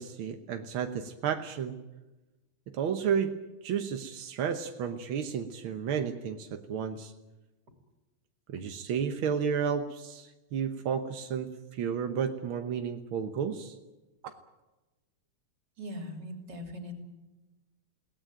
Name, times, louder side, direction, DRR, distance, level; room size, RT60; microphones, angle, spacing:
voice 1, 0.0-1.8 2.7-7.1 8.5-13.7 14.2-14.3, right 7 dB, 65° right, 6 dB, 1.3 m, -32 dB
voice 2, 15.8-16.9, left 1 dB, 35° right, 4 dB, 3.5 m, -40 dB
21.5 x 18.0 x 9.2 m, 1.1 s
omnidirectional pair, 3.7 m